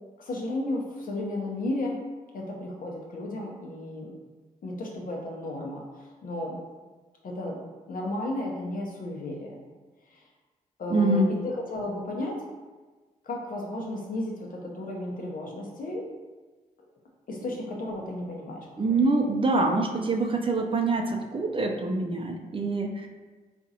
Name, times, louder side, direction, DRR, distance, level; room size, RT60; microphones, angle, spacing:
voice 1, 0.2-2.0 2.3-4.2 4.6-5.8 6.2-6.6 7.2-7.6 7.9-9.6 10.8-12.4 13.2-16.1 17.3-18.7, left 1 dB, 60° left, -1 dB, 0.8 m, -33 dB
voice 2, 10.9-11.3 18.8-23.1, right 2 dB, 35° right, 2 dB, 0.5 m, -25 dB
3.7 x 2.5 x 2.7 m, 1.3 s
supercardioid pair, 55°, 16 cm